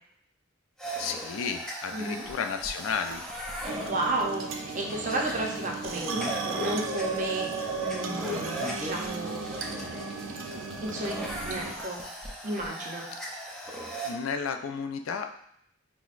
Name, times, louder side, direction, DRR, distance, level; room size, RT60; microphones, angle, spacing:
sound 1, 0.8-14.1, right 1 dB, 5° left, 0.5 m, -37 dB
voice 1, 1.0-3.2 14.1-15.3, left 6 dB, 80° left, 6 dB, 0.4 m, -32 dB
voice 2, 1.9-2.3 3.9-7.5 7.8-10.0 10.5-12.0 12.4-13.1, right 2 dB, 40° right, 0 dB, 0.6 m, -33 dB
sound 2, 3.7-11.7, right 4 dB, 90° right, 0.5 m, -36 dB
5.7 x 2.1 x 2.4 m, 0.70 s
head